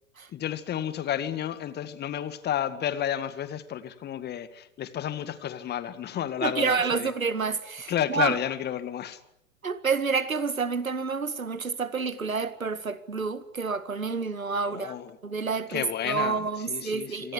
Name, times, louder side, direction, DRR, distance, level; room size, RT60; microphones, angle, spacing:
voice 1, 0.3-7.1 7.9-9.2 14.7-15.2 15.7-17.3, left 10 dB, 25° left, 2.0 m, -31 dB
voice 2, 6.4-8.4 9.6-14.9 15.2-17.3, right 5 dB, 85° right, 1.9 m, -29 dB
26.0 x 19.0 x 9.9 m
figure-of-eight pair, 100°, 40 cm